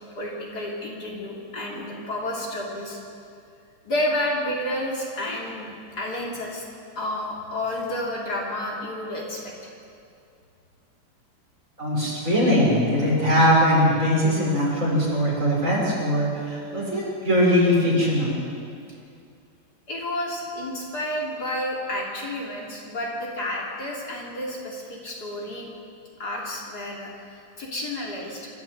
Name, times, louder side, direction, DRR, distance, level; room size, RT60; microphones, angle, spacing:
voice 1, 0.2-3.0 3.8-5.7 6.0-6.6 7.0-9.7 19.9-25.7 26.2-28.5, left 1 dB, 55° left, -3 dB, 3.6 m, -30 dB
voice 2, 11.8-18.4, equal, 40° right, -5 dB, 6.1 m, -21 dB
26.0 x 13.0 x 8.0 m, 2.5 s
omnidirectional pair, 2.1 m